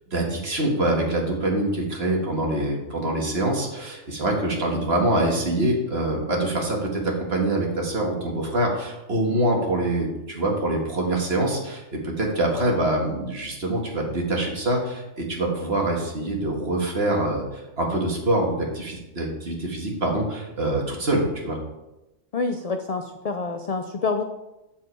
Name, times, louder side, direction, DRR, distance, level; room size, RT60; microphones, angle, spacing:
voice 1, 0.1-21.6, right 1 dB, 50° right, 0 dB, 1.9 m, -25 dB
voice 2, 22.3-24.2, left 4 dB, 60° left, 6 dB, 0.4 m, -27 dB
7.7 x 7.3 x 4.6 m, 0.98 s
omnidirectional pair, 1.4 m